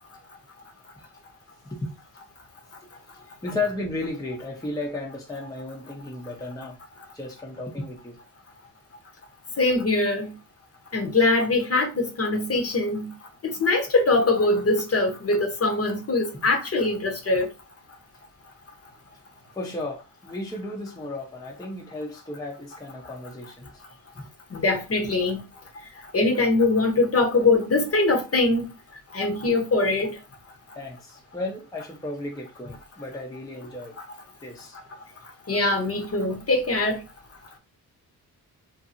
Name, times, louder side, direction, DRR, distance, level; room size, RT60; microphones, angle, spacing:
voice 1, 3.4-6.8 7.1-8.2 19.5-23.8 24.1-24.3 29.5-29.6 30.7-34.0 34.4-34.8, left 2 dB, 10° left, 0.6 m, -34 dB
voice 2, 9.6-10.3 10.9-13.1 13.4-17.5 24.5-25.4 26.1-28.7 29.1-30.1 35.5-37.0, left 2 dB, 40° left, 0.8 m, -22 dB
2.7 x 2.6 x 2.5 m
cardioid pair, 105°, 38 cm